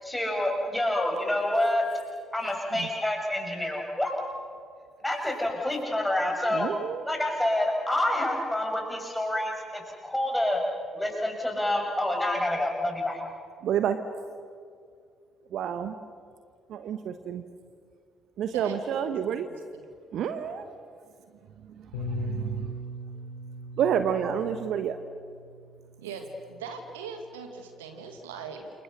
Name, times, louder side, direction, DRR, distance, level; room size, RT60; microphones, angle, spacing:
voice 1, 0.0-1.8 2.3-4.1 5.0-6.7 7.0-10.6 10.9-13.2, left 1 dB, 5° left, 1 dB, 6.5 m, -27 dB
voice 2, 6.5-7.0 13.6-14.0 15.5-16.0 16.7-17.4 18.4-19.5 20.1-20.7 21.8-22.8 23.8-25.0, right 8 dB, 55° right, 10 dB, 1.0 m, -29 dB
voice 3, 18.5-19.4 26.0-28.7, right 5 dB, 75° right, 5 dB, 1.8 m, -40 dB
Bass guitar, 21.9-26.4 27.2-28.2, left 1 dB, 70° left, 3.5 m, -40 dB
28.5 x 25.0 x 6.6 m, 2.2 s
figure-of-eight pair, 45°, 0 cm